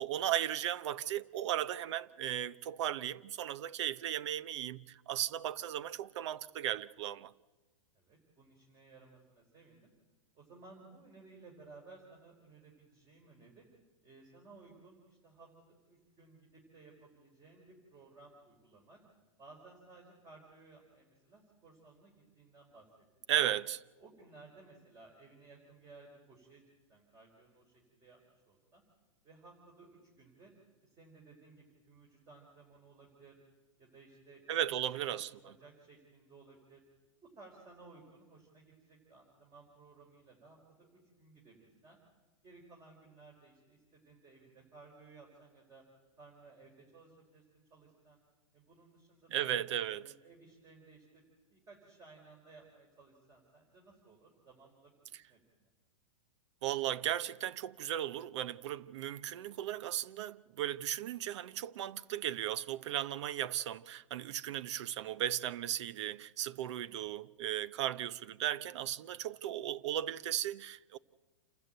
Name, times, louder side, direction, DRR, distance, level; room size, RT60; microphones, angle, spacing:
voice 1, 0.0-7.3 23.3-23.8 34.5-35.3 49.3-50.0 56.6-71.0, right 11 dB, 60° right, 0.9 m, -36 dB
voice 2, 7.9-9.9 10.3-13.6 14.0-19.0 19.4-22.8 24.0-26.6 26.9-28.8 29.2-30.5 30.8-33.4 33.8-34.4 34.7-36.8 37.2-42.0 42.4-45.8 46.2-48.2 48.5-49.5 49.9-51.2 51.5-55.7 68.8-69.3, right 3 dB, 20° right, 4.9 m, -58 dB
28.5 x 13.5 x 9.2 m
hypercardioid pair, 140°, 17 cm